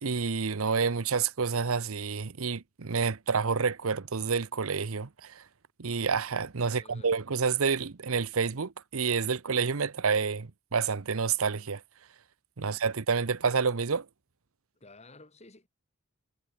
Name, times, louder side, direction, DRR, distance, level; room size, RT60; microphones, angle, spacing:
voice 1, 0.0-5.4 5.8-11.8 12.6-14.0, right 5 dB, 85° right, 0.9 m, -29 dB
voice 2, 6.6-7.1 12.6-12.8 14.8-15.7, left 2 dB, 30° left, 3.4 m, -54 dB
head